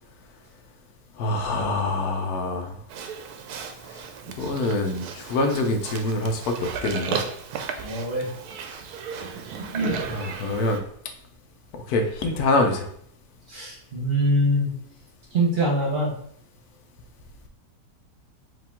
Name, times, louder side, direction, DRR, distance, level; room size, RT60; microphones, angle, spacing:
voice 1, 1.2-2.8 3.9-4.0 4.4-7.2 10.1-10.8 11.7-12.9, left 2 dB, 75° left, 4 dB, 1.1 m, -25 dB
Livestock farm animals working animals, 2.9-10.8, right 6 dB, 75° right, 1.1 m, -35 dB
voice 2, 7.8-8.3 9.6-10.0 13.5-14.7 15.3-16.1, right 1 dB, 45° right, -2 dB, 1.1 m, -24 dB
5.0 x 3.0 x 3.5 m, 0.65 s
omnidirectional pair, 1.7 m